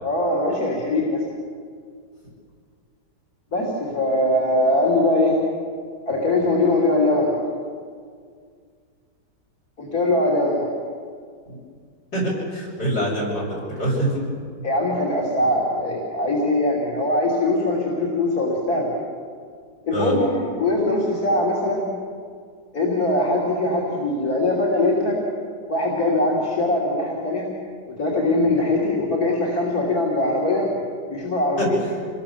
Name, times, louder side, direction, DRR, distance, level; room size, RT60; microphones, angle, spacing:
voice 1, 0.0-1.2 3.5-5.4 6.1-7.4 9.8-10.7 14.6-18.9 19.9-21.9 22.7-25.2 25.7-27.5 27.9-30.7 31.1-31.8, left 2 dB, 60° left, -5 dB, 3.9 m, -21 dB
voice 2, 12.1-14.2 19.9-20.2 31.6-31.7, right 1 dB, 80° left, -4 dB, 8.7 m, -25 dB
27.0 x 21.0 x 7.3 m, 2.1 s
omnidirectional pair, 1.8 m